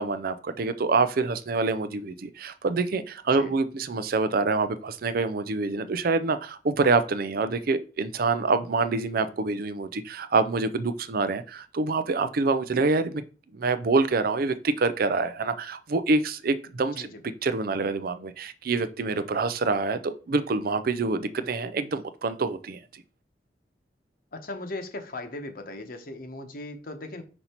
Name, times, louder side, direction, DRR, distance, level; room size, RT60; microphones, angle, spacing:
voice 1, 0.0-13.2 13.5-17.1 17.4-23.0, right 3 dB, 55° right, 0.5 m, -26 dB
voice 2, 8.9-9.3 16.9-17.3 24.3-27.2, left 2 dB, 55° left, 1.0 m, -38 dB
5.4 x 4.1 x 4.4 m
head